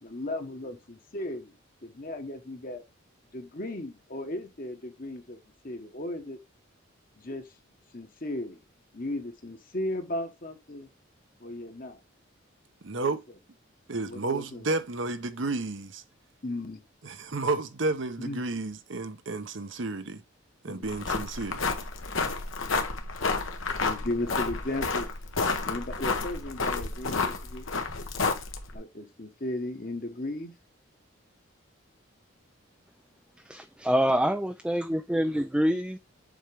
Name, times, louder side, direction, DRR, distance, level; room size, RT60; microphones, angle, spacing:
voice 1, 0.0-1.5 1.8-2.8 3.3-6.4 7.2-7.4 7.9-8.6 8.9-10.9 11.4-12.0 12.9-13.2 14.0-14.7 16.4-16.8 18.2-18.4 20.7-20.9 23.8-25.1 25.6-27.7 28.7-30.5, left 1 dB, 45° left, 1.2 m, -36 dB
voice 2, 12.8-13.2 13.9-16.0 17.0-20.2 20.6-21.6, right 3 dB, 65° right, 0.9 m, -31 dB
sound 1, 20.8-28.8, left 4 dB, 80° left, 1.2 m, -30 dB
voice 3, 33.4-36.0, equal, 5° right, 0.3 m, -26 dB
7.2 x 4.4 x 3.5 m
head